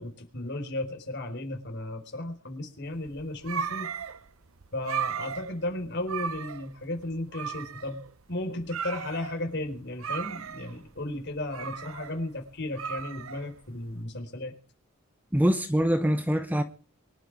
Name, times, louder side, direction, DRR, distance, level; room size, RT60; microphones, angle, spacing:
voice 1, 0.0-3.9 4.7-8.0 8.3-14.6, left 1 dB, 55° left, 4.3 m, -35 dB
sound 1, 2.9-13.9, right 7 dB, 75° right, 1.0 m, -37 dB
voice 2, 15.3-16.6, equal, 10° right, 1.1 m, -24 dB
24.0 x 11.5 x 4.7 m
head